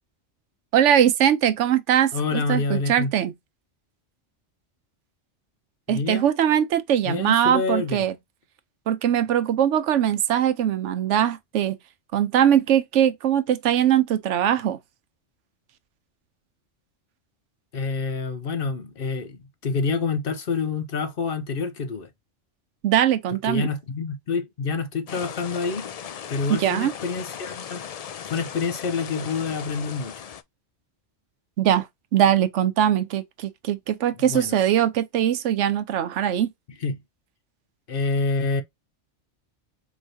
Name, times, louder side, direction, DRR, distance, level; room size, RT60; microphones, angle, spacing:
voice 1, 0.7-3.3 5.9-8.1 8.9-11.8 12.1-14.8 22.8-23.7 26.5-26.9 31.6-31.9 32.1-36.5, right 10 dB, 85° right, 1.0 m, -21 dB
voice 2, 2.1-3.1 5.9-6.3 7.1-8.1 17.7-22.1 23.5-25.8 26.3-27.8 28.2-30.3 34.3-34.6 36.8-37.0 37.9-38.6, left 4 dB, 55° left, 0.9 m, -27 dB
sound 1, 25.1-30.4, left 8 dB, 70° left, 0.3 m, -37 dB
4.7 x 3.1 x 2.6 m
omnidirectional pair, 1.2 m